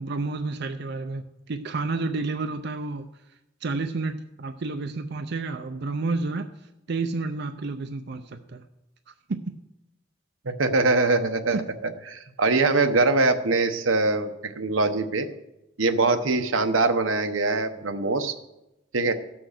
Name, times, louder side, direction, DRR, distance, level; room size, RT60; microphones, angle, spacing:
voice 1, 0.0-3.0 3.6-6.5 6.9-8.7 9.1-9.5 11.5-11.6, right 3 dB, 55° right, 7 dB, 0.5 m, -30 dB
voice 2, 10.4-11.6 12.1-15.3 15.8-18.3 18.9-19.1, right 3 dB, 90° right, 7 dB, 1.0 m, -23 dB
15.5 x 6.1 x 6.5 m, 0.94 s
head